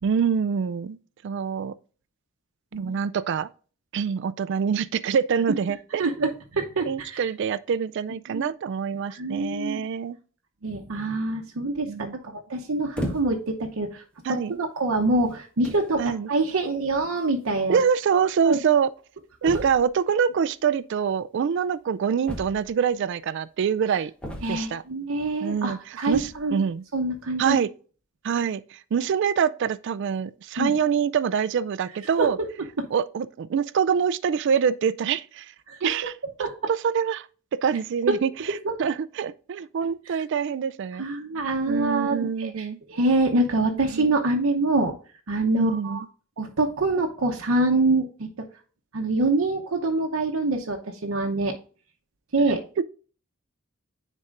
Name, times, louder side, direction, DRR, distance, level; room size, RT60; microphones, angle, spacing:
voice 1, 0.0-1.0 1.2-1.7 2.8-3.5 3.9-6.0 6.9-10.2 11.9-12.4 14.2-14.6 16.0-16.3 17.7-18.9 19.4-24.1 24.5-24.8 25.4-25.8 26.1-26.8 27.4-27.7 28.2-32.4 32.9-35.5 35.8-36.1 36.7-37.3 37.6-38.3 38.8-41.0 41.7-42.8 43.7-44.1 45.6-46.0, right 7 dB, 60° right, 0.3 m, -25 dB
voice 2, 6.0-7.2 8.3-8.5 9.1-9.8 10.6-14.0 14.3-17.8 18.1-18.6 24.4-26.6 26.9-27.6 30.6-30.8 32.2-32.5 35.7-35.9 36.4-36.5 38.1-38.2 38.6-38.7 40.1-40.2 41.0-44.9 45.3-46.0 46.4-48.3 48.9-51.5 52.3-52.6, right 2 dB, 80° right, 0.8 m, -25 dB
sound 1, 13.0-13.6 14.3-14.5 15.3-15.4 15.6-16.0 17.2-17.3 17.5-17.6 17.8-17.9 19.4-20.0 22.3-22.9 24.2-24.9 26.0-26.5, equal, 5° left, 1.1 m, -35 dB
9.7 x 4.2 x 2.5 m
head